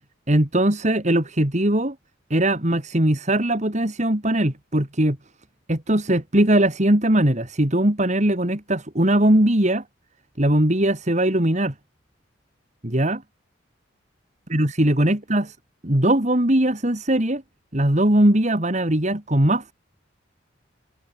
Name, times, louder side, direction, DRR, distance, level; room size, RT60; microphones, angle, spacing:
voice 1, 0.3-2.0 2.3-5.2 5.7-9.8 10.4-11.7 12.8-13.2 14.5-15.5 15.8-17.4 17.7-19.7, right 1 dB, 40° right, 2.7 m, -20 dB
head